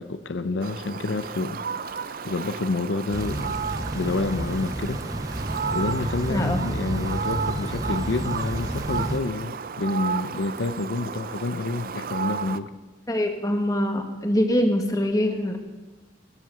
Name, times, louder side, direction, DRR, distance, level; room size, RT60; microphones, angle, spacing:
voice 1, 0.0-3.6 3.9-5.0 5.7-12.7, left 3 dB, 80° left, 12 dB, 0.6 m, -28 dB
Fowl, 0.6-12.6, right 6 dB, 50° right, 0.5 m, -33 dB
sound 1, 3.1-9.2, right 1 dB, 20° right, 0.8 m, -31 dB
voice 2, 6.3-6.6 13.1-15.6, left 1 dB, 20° left, 5 dB, 1.5 m, -23 dB
19.0 x 7.8 x 6.8 m, 1.2 s
head